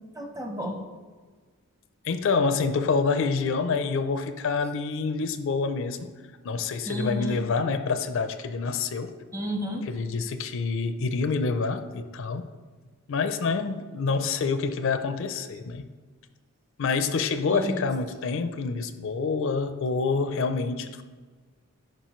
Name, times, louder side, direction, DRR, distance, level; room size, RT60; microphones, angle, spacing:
voice 1, 0.1-0.8 6.8-7.4 9.3-9.8 17.5-17.8, left 1 dB, 15° right, 3 dB, 0.7 m, -31 dB
voice 2, 2.0-6.1 6.4-9.1 9.9-12.5 13.1-15.9 16.8-21.0, left 4 dB, 60° left, 10 dB, 0.4 m, -27 dB
9.9 x 5.3 x 3.0 m, 1.4 s
head